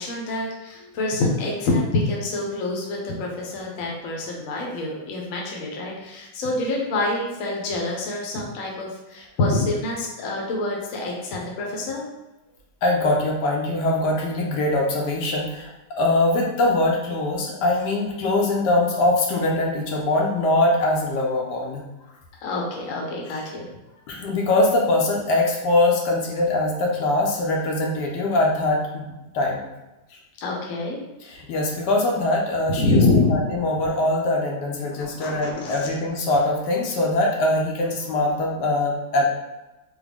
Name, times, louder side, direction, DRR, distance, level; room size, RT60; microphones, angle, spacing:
voice 1, 0.0-12.1 22.4-23.7 30.4-31.0 32.7-33.5 34.8-35.9, left 2 dB, 60° left, -1 dB, 1.0 m, -26 dB
voice 2, 12.8-15.7 16.0-21.8 24.1-29.6 31.2-33.0 33.3-39.3, left 2 dB, 80° left, -1 dB, 1.2 m, -22 dB
3.6 x 2.1 x 3.3 m, 1.0 s
omnidirectional pair, 1.8 m